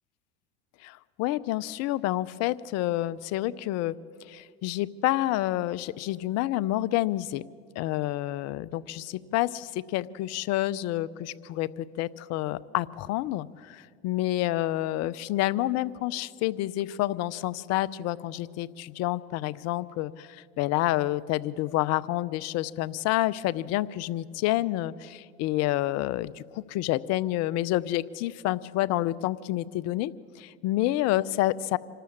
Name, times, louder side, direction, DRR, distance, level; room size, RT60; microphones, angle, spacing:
voice 1, 0.8-3.9 4.2-7.4 7.8-30.1 30.4-31.8, left 16 dB, 55° left, 18 dB, 0.7 m, -28 dB
26.0 x 12.5 x 8.6 m, 2.1 s
supercardioid pair, 100°, 31 cm